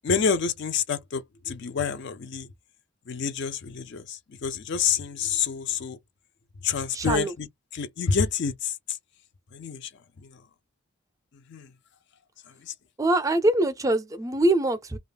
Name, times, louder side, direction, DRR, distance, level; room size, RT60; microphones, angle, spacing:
voice 1, 0.0-2.5 3.1-6.0 6.6-7.5 7.7-9.0 9.5-9.9 10.2-10.4 11.5-11.7 12.6-12.7, left 6 dB, 50° left, 0.4 m, -28 dB
voice 2, 6.9-7.3 13.0-15.0, right 1 dB, 15° right, 0.4 m, -23 dB
2.3 x 2.0 x 3.3 m
head